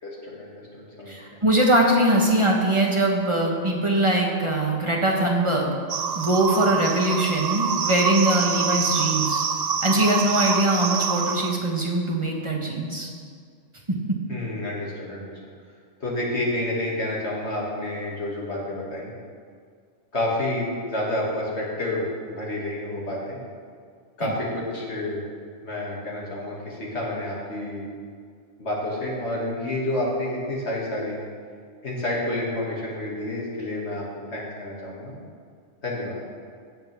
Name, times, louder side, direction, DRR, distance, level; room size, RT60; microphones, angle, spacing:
voice 1, 0.0-1.4 14.3-15.3 16.0-19.1 20.1-23.4 24.2-25.2 25.6-27.9 28.6-31.2 31.8-35.1 35.8-36.2, left 1 dB, 60° left, -4 dB, 2.6 m, -29 dB
voice 2, 1.1-5.7 6.1-9.4 9.8-13.1 13.9-14.0 24.2-24.3, right 1 dB, 25° right, -1 dB, 1.2 m, -22 dB
sound 1, 5.9-11.6, right 6 dB, 60° right, 0.4 m, -26 dB
17.0 x 7.6 x 3.6 m, 2.1 s
omnidirectional pair, 1.3 m